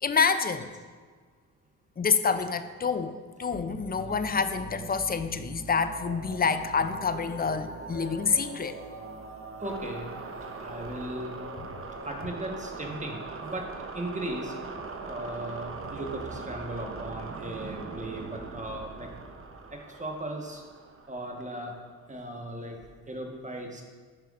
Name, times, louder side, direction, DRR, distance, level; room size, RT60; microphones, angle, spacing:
voice 1, 0.0-0.7 2.0-8.8, left 5 dB, 25° left, 10 dB, 0.4 m, -27 dB
sound 1, 3.5-22.0, right 3 dB, 35° right, 0.8 m, -41 dB
voice 2, 9.6-10.1 10.6-11.3 12.0-13.6 13.9-14.5 15.0-19.1 19.7-20.6 21.1-21.7 22.1-22.8 23.1-23.8, right 1 dB, 20° right, 1 dB, 1.3 m, -37 dB
9.0 x 5.6 x 2.5 m, 1.5 s
supercardioid pair, 55°, 37 cm